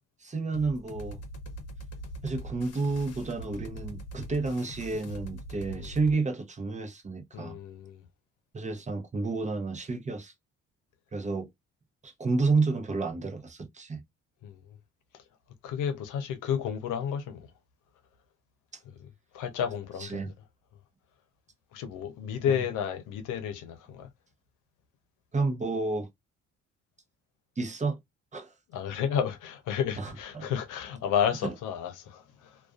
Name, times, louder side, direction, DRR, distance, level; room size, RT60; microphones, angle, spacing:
voice 1, 0.2-1.2 2.2-7.6 8.5-10.3 11.1-11.5 12.0-14.0 20.0-20.3 22.5-22.6 25.3-26.1 27.6-28.0 28.3-28.5 30.0-30.5 31.4-31.5, right 3 dB, 25° right, 0.7 m, -30 dB
sound 1, 0.5-6.1, equal, 55° left, 0.8 m, -42 dB
voice 2, 7.3-8.0 14.4-14.6 15.6-17.5 19.0-19.1 19.3-20.3 21.7-24.1 28.7-32.6, left 8 dB, 90° left, 0.7 m, -31 dB
2.4 x 2.3 x 2.3 m
cardioid pair, 90°, 30 cm